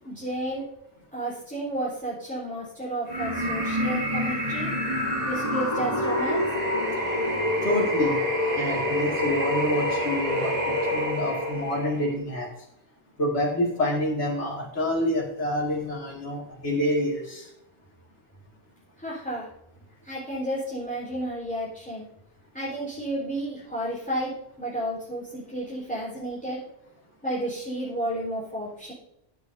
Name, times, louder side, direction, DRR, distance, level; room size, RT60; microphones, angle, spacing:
voice 1, 0.0-0.6 1.1-4.7 5.2-6.4 19.0-19.5 20.0-22.1 22.5-26.6 27.2-28.9, right 1 dB, 5° left, -8 dB, 4.2 m, -32 dB
sound 1, 3.1-12.1, left 1 dB, 30° right, 2.9 m, -27 dB
voice 2, 7.6-8.2 8.5-10.5 10.9-12.5 13.2-17.5, left 1 dB, 65° left, -6 dB, 2.8 m, -27 dB
15.5 x 9.3 x 2.7 m, 0.81 s
omnidirectional pair, 1.3 m